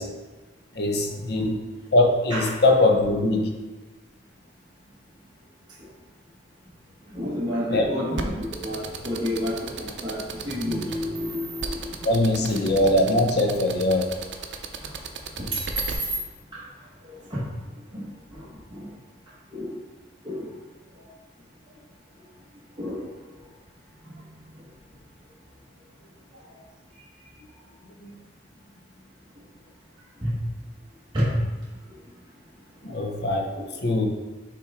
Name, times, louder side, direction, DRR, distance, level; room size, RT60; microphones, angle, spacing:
voice 1, 0.8-1.6 1.9-3.5 7.7-7.8 12.0-14.1 28.0-28.1 32.8-33.5 33.8-34.1, left 2 dB, 60° left, 3 dB, 0.7 m, -21 dB
voice 2, 7.1-12.1 12.5-12.6 14.8-14.9 15.4-15.9 16.5-16.6 17.3-17.4 17.9-18.9 19.5-19.8 20.2-20.6 22.8-23.1 30.2-30.3 31.1-31.3 33.5-33.6, equal, 25° right, -8 dB, 1.1 m, -30 dB
sound 1, 8.2-15.9, right 5 dB, 75° right, 0.6 m, -34 dB
5.7 x 3.5 x 4.7 m, 1.2 s
head